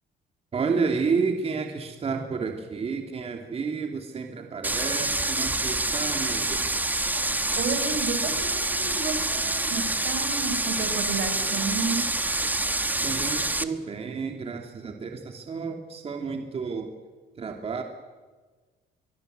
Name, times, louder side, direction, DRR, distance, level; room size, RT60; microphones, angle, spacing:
voice 1, 0.5-6.7 13.0-16.9 17.4-17.8, right 5 dB, 35° right, 4 dB, 2.7 m, -30 dB
sound 1, 4.6-13.6, right 2 dB, 10° right, 1.3 m, -27 dB
voice 2, 7.5-12.1, right 4 dB, 75° right, 8 dB, 4.8 m, -32 dB
23.0 x 23.0 x 8.1 m, 1.4 s
cardioid pair, 110°, 17 cm